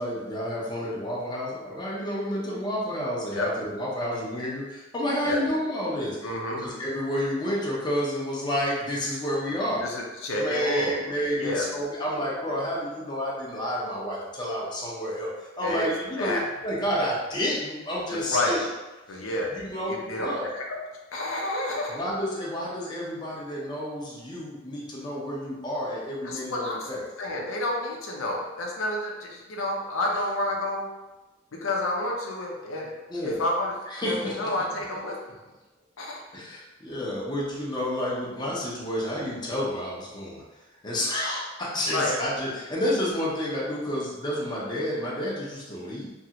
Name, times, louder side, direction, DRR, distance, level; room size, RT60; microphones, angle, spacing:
voice 1, 0.0-6.3 6.6-9.8 10.4-18.7 19.5-20.5 21.9-27.0 33.1-33.4 33.9-34.5 36.3-40.4 40.8-46.1, equal, 20° left, -5 dB, 0.6 m, -30 dB
voice 2, 6.2-6.7 9.8-11.0 11.4-11.7 15.6-15.9 16.2-16.4 18.1-18.6 19.1-19.6 19.9-20.8 21.1-22.0 26.2-26.9 27.2-30.9 31.5-32.9 33.2-33.7 34.0-35.3 36.0-36.2 41.9-42.2, left 1 dB, 85° left, -1 dB, 0.5 m, -29 dB
2.9 x 2.4 x 2.8 m, 1.1 s
head